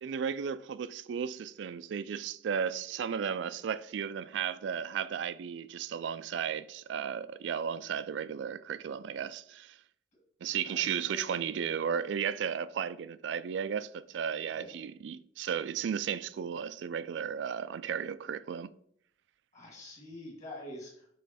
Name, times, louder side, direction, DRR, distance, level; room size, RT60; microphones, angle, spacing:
voice 1, 0.0-9.8 10.4-18.7, right 7 dB, 85° right, 0.3 m, -34 dB
voice 2, 10.6-11.4 14.5-14.7 19.5-21.1, left 1 dB, 40° left, 1.8 m, -46 dB
7.9 x 3.1 x 4.1 m
head